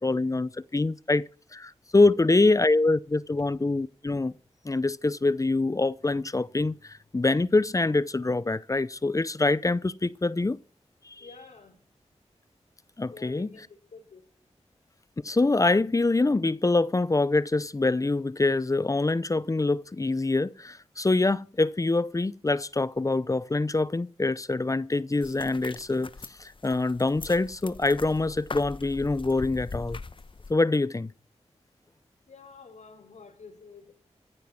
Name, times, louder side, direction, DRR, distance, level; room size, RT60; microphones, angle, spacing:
voice 1, 0.0-4.3 4.6-10.6 11.1-11.2 13.0-13.5 15.2-26.1 26.4-30.0 30.5-31.1, left 2 dB, 30° left, 0.6 m, -25 dB
voice 2, 11.2-11.8 13.1-14.2 32.3-33.9, left 4 dB, 90° left, 5.6 m, -48 dB
sound 1, 25.2-30.5, left 3 dB, 45° left, 1.1 m, -41 dB
15.0 x 9.0 x 7.4 m
cardioid pair, 55°, 12 cm